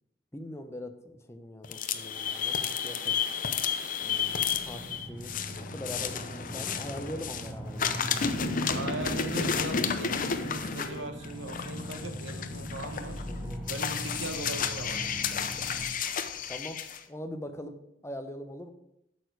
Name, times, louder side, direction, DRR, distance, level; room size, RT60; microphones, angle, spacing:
voice 1, 0.3-3.2 4.0-5.3 5.6-8.0 13.2-13.8 16.5-16.8 17.1-18.7, left 1 dB, 15° left, 7 dB, 0.7 m, -42 dB
sound 1, 1.6-7.5 7.8-17.0, left 6 dB, 45° left, 0.6 m, -32 dB
sound 2, 2.1-10.8 11.2-11.3, left 1 dB, 35° right, 3.3 m, -58 dB
sound 3, 4.0-15.8, right 1 dB, 15° right, 2.1 m, -40 dB
voice 2, 8.7-13.2 13.7-15.1, right 2 dB, 70° right, 6 dB, 1.1 m, -39 dB
8.5 x 6.9 x 4.7 m, 0.82 s
head